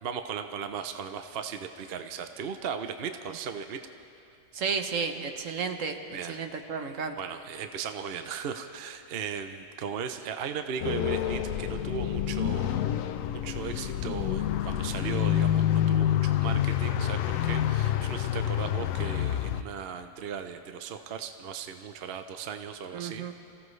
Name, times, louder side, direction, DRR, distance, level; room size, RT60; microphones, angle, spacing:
voice 1, 0.0-3.8 6.1-6.4 7.2-12.9 13.4-23.3, right 7 dB, 55° right, 8 dB, 0.8 m, -37 dB
voice 2, 4.5-6.0 6.3-7.1 22.9-23.3, right 5 dB, 75° right, 6 dB, 1.3 m, -32 dB
sound 1, 10.8-19.6, left 11 dB, 80° left, 1.0 m, -27 dB
27.5 x 16.0 x 3.2 m, 2.5 s
omnidirectional pair, 1.4 m